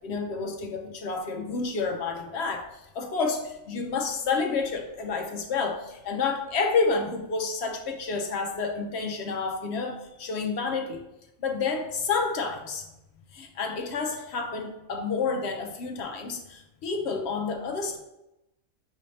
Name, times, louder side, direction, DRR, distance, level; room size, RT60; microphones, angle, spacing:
voice 1, 0.0-2.7 2.9-11.0 11.4-12.9 13.3-18.0, left 4 dB, 65° left, 4 dB, 0.7 m, -29 dB
6.2 x 2.6 x 3.2 m, 0.92 s
omnidirectional pair, 1.4 m